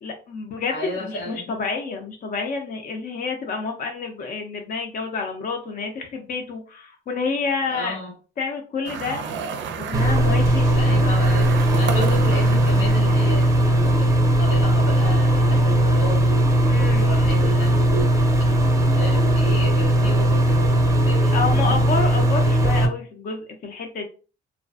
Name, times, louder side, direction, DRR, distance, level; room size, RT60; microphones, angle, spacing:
voice 1, 0.0-8.0 8.4-9.3 9.8-11.2 16.7-17.1 21.3-24.1, left 4 dB, 45° left, 0.5 m, -29 dB
voice 2, 0.7-1.5 7.7-8.1 10.7-16.5 16.9-18.5 18.8-21.4 21.7-21.8, equal, 90° left, 1.3 m, -33 dB
sound 1, 8.8-14.1, right 6 dB, 70° right, 0.4 m, -33 dB
sound 2, 9.9-22.9, right 1 dB, 15° right, 0.5 m, -18 dB
2.4 x 2.4 x 2.3 m
cardioid pair, 90°, 20 cm